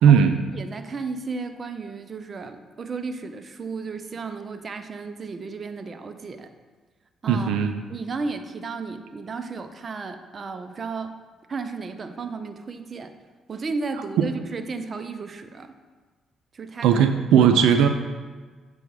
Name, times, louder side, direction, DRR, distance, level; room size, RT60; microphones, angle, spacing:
voice 1, 0.0-0.4 7.3-7.8 14.2-14.3 16.8-17.9, right 8 dB, 85° right, 7 dB, 0.4 m, -17 dB
voice 2, 0.5-6.5 7.2-7.6 7.9-11.2 11.5-13.1 13.5-15.7 16.5-17.0 17.3-17.5, right 4 dB, 40° right, 8 dB, 0.6 m, -34 dB
8.1 x 3.5 x 6.1 m, 1.4 s
cardioid pair, 90°, 0 cm